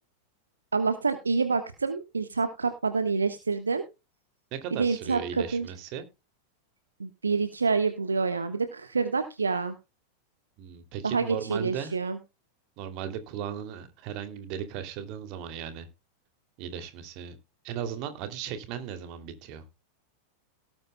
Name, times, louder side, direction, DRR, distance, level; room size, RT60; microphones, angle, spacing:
voice 1, 0.7-3.8 4.7-5.7 7.0-9.7 11.0-12.2, right 4 dB, 75° right, 9 dB, 1.3 m, -27 dB
voice 2, 4.5-6.0 10.6-11.9 12.8-15.9 16.6-17.4 17.6-19.6, right 8 dB, 45° right, 9 dB, 2.7 m, -37 dB
18.0 x 9.6 x 2.2 m, 0.27 s
figure-of-eight pair, 90°, 0 cm